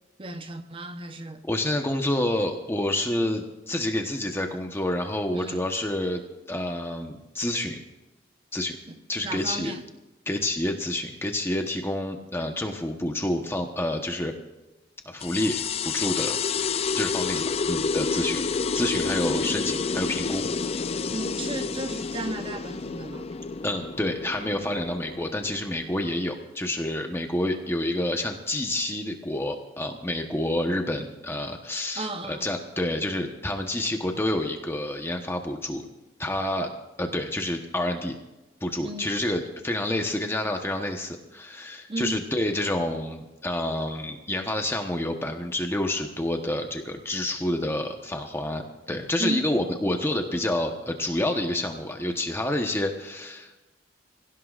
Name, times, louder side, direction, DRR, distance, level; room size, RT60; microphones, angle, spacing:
voice 1, 0.2-1.4 5.3-5.6 8.9-9.0 9.2-9.8 21.1-23.3 32.0-32.5 38.8-39.1 41.9-42.3 49.2-49.4, right 2 dB, 30° right, 0.9 m, -34 dB
voice 2, 1.4-6.2 6.5-7.8 8.5-8.8 9.1-9.7 10.3-14.3 15.0-15.6 15.8-16.4 16.9-18.4 18.7-20.4 23.6-35.9 36.2-36.7 37.0-38.2 38.6-53.6, left 1 dB, 15° left, 1.1 m, -28 dB
sound 1, 15.2-26.2, left 5 dB, 35° left, 0.4 m, -29 dB
25.0 x 16.5 x 2.5 m
head